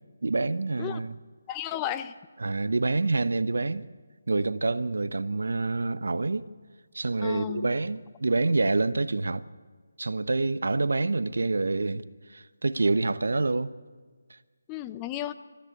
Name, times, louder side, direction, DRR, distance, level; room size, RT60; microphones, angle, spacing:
voice 1, 0.2-1.1 2.4-3.8 4.3-6.5 6.9-9.4 10.0-12.0 12.3-13.7, right 3 dB, 75° right, 0.9 m, -27 dB
voice 2, 1.5-2.1 7.2-7.7 14.7-15.3, left 12 dB, 15° left, 0.6 m, -33 dB
25.5 x 14.0 x 9.5 m
figure-of-eight pair, 160°, 0 cm